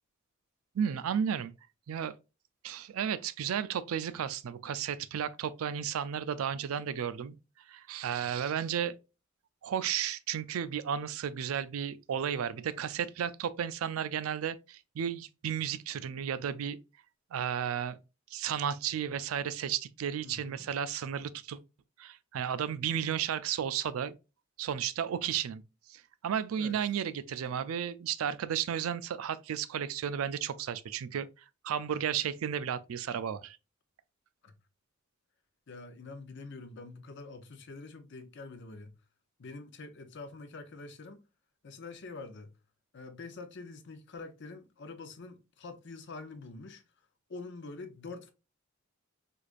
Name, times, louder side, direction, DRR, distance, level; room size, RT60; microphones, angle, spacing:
voice 1, 0.7-1.5 1.9-2.1 2.6-7.4 7.7-9.0 9.6-16.8 17.3-18.0 18.3-21.6 22.0-24.2 24.6-25.6 25.9-31.3 31.6-33.6, right 8 dB, 85° right, 0.4 m, -33 dB
voice 2, 20.2-20.7 26.6-26.8 34.4-34.6 35.7-39.0 39.4-41.2 41.6-42.6 42.9-46.8 47.3-48.3, left 3 dB, 60° left, 0.6 m, -46 dB
4.6 x 2.5 x 2.4 m
head